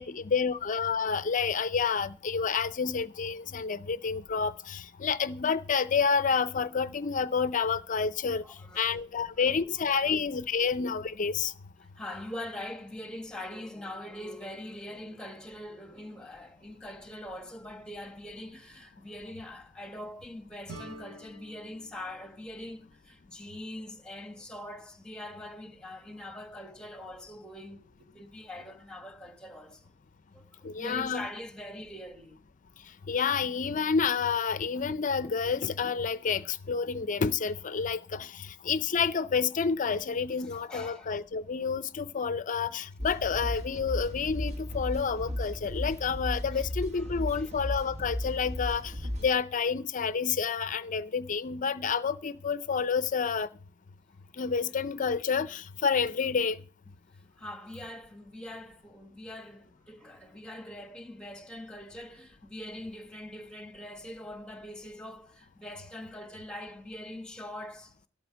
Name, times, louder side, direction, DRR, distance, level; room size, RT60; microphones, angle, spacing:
voice 1, 0.0-8.4 8.8-11.5 30.6-31.2 33.1-48.9 49.2-53.5 54.4-56.6, left 6 dB, 40° left, 0.5 m, -29 dB
voice 2, 8.4-8.9 9.3-9.5 9.9-10.2 11.8-29.9 30.3-30.5 30.7-32.4 40.4-41.1 46.5-47.5 57.1-67.9, left 1 dB, 5° left, 1.3 m, -43 dB
sound 1, 20.7-23.5, right 2 dB, 85° right, 7.2 m, -49 dB
sound 2, 43.0-49.3, left 1 dB, 35° right, 1.1 m, -35 dB
13.0 x 12.0 x 4.6 m
head